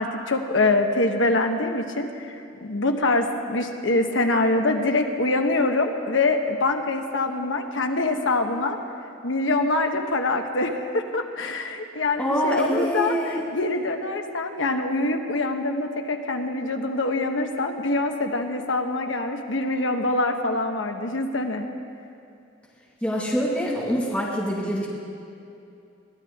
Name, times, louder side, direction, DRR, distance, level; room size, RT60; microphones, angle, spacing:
voice 1, 0.0-8.8 9.2-21.7, left 2 dB, 70° left, 4 dB, 1.1 m, -24 dB
voice 2, 12.2-13.4 23.0-24.9, equal, 5° left, -5 dB, 1.8 m, -25 dB
22.5 x 15.0 x 3.6 m, 2.6 s
head